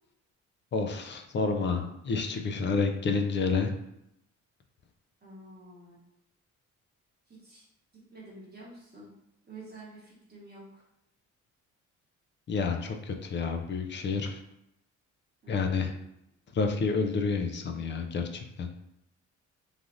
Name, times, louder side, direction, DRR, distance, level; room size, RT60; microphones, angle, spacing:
voice 1, 0.7-3.7 12.5-14.4 15.5-15.9 16.5-18.7, left 4 dB, 40° left, 5 dB, 0.4 m, -29 dB
voice 2, 5.2-6.1 7.3-7.6 7.9-9.1 9.4-10.8 15.4-16.0, right 2 dB, 35° right, -5 dB, 1.0 m, -49 dB
3.2 x 2.4 x 2.5 m, 0.82 s
cardioid pair, 90°, 30 cm